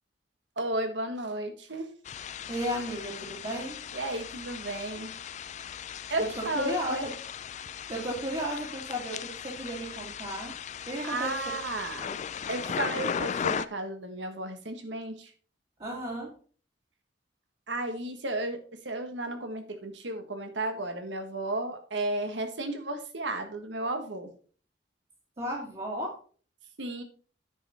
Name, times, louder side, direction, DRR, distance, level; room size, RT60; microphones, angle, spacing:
voice 1, 0.6-1.9 3.9-5.1 6.1-7.1 11.0-12.2 12.5-15.3 17.7-18.6 18.8-24.3 26.8-27.0, right 2 dB, 80° right, 7 dB, 1.4 m, -33 dB
sound 1, 2.1-13.7, left 7 dB, 40° left, 0.3 m, -37 dB
voice 2, 2.5-3.8 6.2-7.1 7.9-10.5 10.9-11.4 15.8-16.3 25.4-26.2, equal, 35° right, -6 dB, 2.3 m, -34 dB
9.7 x 5.4 x 4.2 m, 0.42 s
head